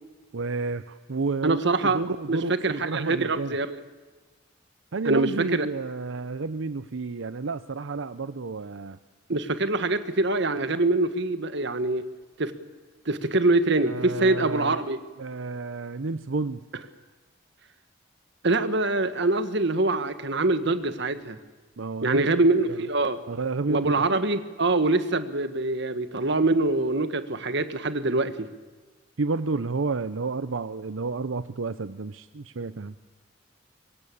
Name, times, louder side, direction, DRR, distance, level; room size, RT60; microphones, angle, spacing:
voice 1, 0.3-3.5 4.9-9.0 13.9-14.8 15.2-16.6 21.8-22.2 22.7-22.8 23.3-24.0 29.2-33.0, right 3 dB, 85° right, 12 dB, 0.7 m, -30 dB
voice 2, 1.4-2.0 2.3-3.8 5.1-5.7 9.3-12.0 12.4-12.5 13.1-15.0 18.4-21.4 22.0-23.2 23.7-28.5, right 2 dB, 65° right, 11 dB, 1.6 m, -24 dB
24.0 x 23.0 x 8.7 m, 1.3 s
head